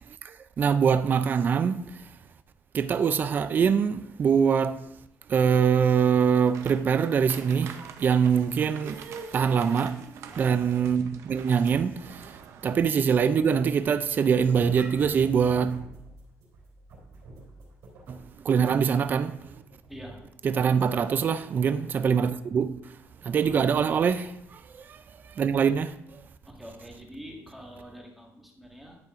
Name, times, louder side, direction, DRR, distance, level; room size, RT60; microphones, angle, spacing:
voice 1, 0.2-1.8 2.7-4.8 5.3-12.3 12.6-15.8 18.1-18.2 18.4-19.4 20.4-22.8 23.2-24.6 24.9-25.0 25.4-25.9, right 7 dB, 40° right, 0.4 m, -24 dB
sound 1, 6.4-13.1 13.4-13.6 14.0-14.1, right 7 dB, 70° right, 0.7 m, -47 dB
voice 2, 10.3-10.6 12.6-12.8 19.9-20.2 23.4-23.8 26.4-29.0, equal, 5° right, 1.7 m, -45 dB
sound 2, 14.4-21.1, right 2 dB, 85° right, 3.3 m, -47 dB
10.5 x 8.3 x 2.5 m
cardioid pair, 130°, 5 cm